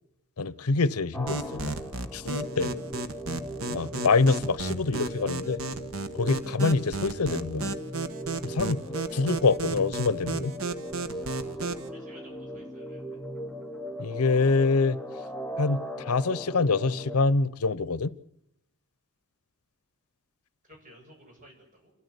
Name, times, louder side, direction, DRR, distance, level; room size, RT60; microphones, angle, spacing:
voice 1, 0.4-1.7 2.1-2.7 3.7-5.6 6.1-7.8 8.4-8.8 9.1-10.5 14.0-15.0 15.6-18.1, left 3 dB, 85° left, 0.7 m, -25 dB
sound 1, 1.1-17.2, equal, 5° left, 0.9 m, -38 dB
sound 2, 1.3-11.9, right 3 dB, 70° right, 1.4 m, -34 dB
voice 2, 11.9-13.0 20.6-21.9, equal, 35° right, 7.4 m, -53 dB
28.0 x 13.5 x 8.2 m
head